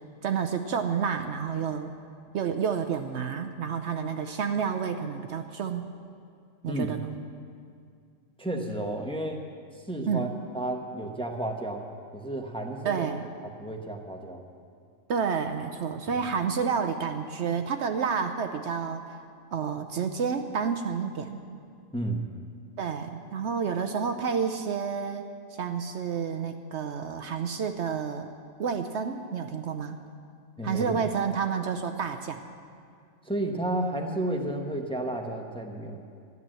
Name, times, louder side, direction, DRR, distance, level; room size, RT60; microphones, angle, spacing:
voice 1, 0.2-1.9 2.3-5.9 6.6-7.1 10.1-10.3 12.8-13.3 15.1-19.2 19.5-21.4 22.8-28.3 28.6-30.0 30.6-32.5, right 6 dB, 65° right, 7 dB, 0.9 m, -30 dB
voice 2, 8.4-9.4 9.7-10.3 10.5-11.8 12.1-13.1 13.6-14.4 16.1-16.2 21.9-22.3 30.6-30.9 33.2-36.1, right 1 dB, 5° left, 2 dB, 1.0 m, -32 dB
13.5 x 10.5 x 7.6 m, 2.3 s
omnidirectional pair, 1.4 m